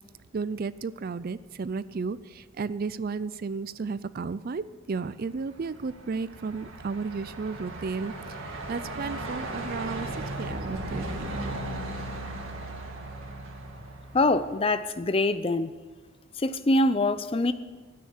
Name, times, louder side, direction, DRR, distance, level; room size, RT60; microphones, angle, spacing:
voice 1, 0.3-11.3, right 4 dB, 45° right, 16 dB, 0.4 m, -33 dB
Truck, 5.3-14.7, right 1 dB, 70° right, 2.0 m, -37 dB
voice 2, 14.1-15.7 16.4-17.5, left 2 dB, 25° left, 13 dB, 0.5 m, -24 dB
13.0 x 9.5 x 8.1 m, 1.3 s
head